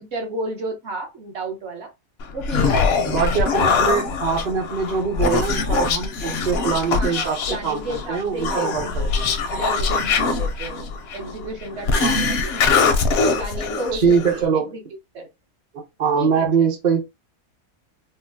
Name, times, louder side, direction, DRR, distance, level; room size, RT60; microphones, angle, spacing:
voice 1, 0.0-1.9 2.3-3.1 7.0-12.6 13.4-14.4 14.7-14.8 15.1-15.3 16.2-16.5, right 2 dB, 55° right, 1.1 m, -32 dB
Human voice, 2.2-14.4, left 4 dB, 65° left, 0.6 m, -22 dB
voice 2, 3.1-9.3 12.0-12.2 13.9-14.7 15.7-17.0, right 6 dB, 40° right, 0.7 m, -23 dB
3.7 x 2.0 x 2.6 m
omnidirectional pair, 1.5 m